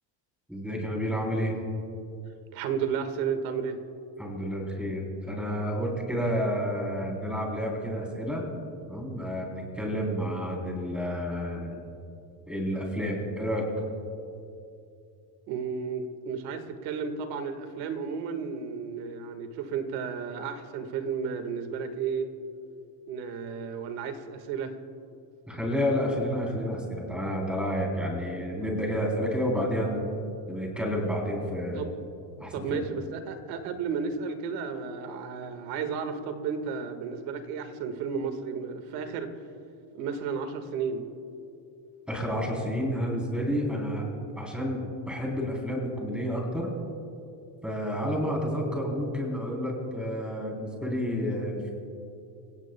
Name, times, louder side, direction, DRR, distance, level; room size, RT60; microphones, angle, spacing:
voice 1, 0.5-1.6 4.2-8.5 8.9-11.8 12.5-13.7 25.5-30.1 30.5-31.8 32.4-32.8 42.1-44.1 44.4-46.7 47.6-51.7, equal, ahead, -1 dB, 3.5 m, -30 dB
voice 2, 2.5-3.8 15.5-22.3 23.1-24.7 31.7-31.9 32.5-39.3 39.9-41.0, right 6 dB, 85° right, 7 dB, 1.8 m, -33 dB
29.0 x 17.0 x 2.3 m, 2.6 s
cardioid pair, 150°, 49 cm